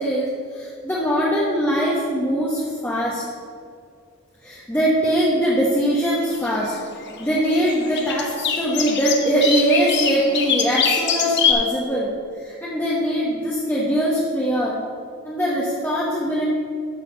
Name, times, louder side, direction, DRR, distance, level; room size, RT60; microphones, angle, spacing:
voice 1, 0.0-3.2 4.4-6.7 7.2-12.1 12.4-14.8 15.2-16.4, equal, 10° left, -6 dB, 1.1 m, -22 dB
sound 1, 6.2-11.5, left 7 dB, 50° left, 1.1 m, -25 dB
12.0 x 4.5 x 6.9 m, 2.3 s
head